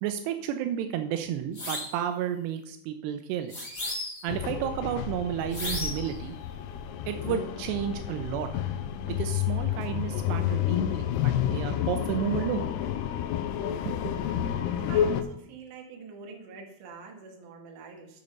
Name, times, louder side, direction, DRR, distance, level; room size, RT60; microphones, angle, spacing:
voice 1, 0.0-3.7 4.2-6.4 7.1-8.5 9.2-12.6 13.9-14.1, right 10 dB, 85° right, 8 dB, 2.7 m, -32 dB
sound 1, 1.5-2.0 3.5-4.3 5.5-6.1, left 2 dB, 20° left, 2.4 m, -34 dB
sound 2, 4.3-15.2, left 10 dB, 85° left, 2.7 m, -30 dB
voice 2, 14.9-18.1, right 5 dB, 60° right, 2 dB, 2.7 m, -45 dB
8.2 x 6.9 x 5.3 m, 0.73 s
omnidirectional pair, 4.8 m